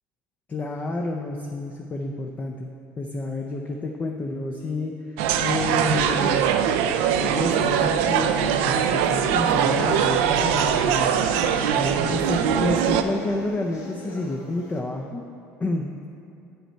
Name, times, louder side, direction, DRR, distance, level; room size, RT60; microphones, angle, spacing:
voice 1, 0.5-2.7 3.0-6.6 7.1-11.1 11.8-15.2 15.6-16.1, left 2 dB, 25° left, 2 dB, 0.5 m, -30 dB
sound 1, 5.2-13.0, right 8 dB, 80° right, 0.4 m, -22 dB
sound 2, 6.8-14.8, left 3 dB, 50° left, 1.3 m, -39 dB
8.8 x 5.5 x 4.4 m, 2.8 s
supercardioid pair, 110°, 6 cm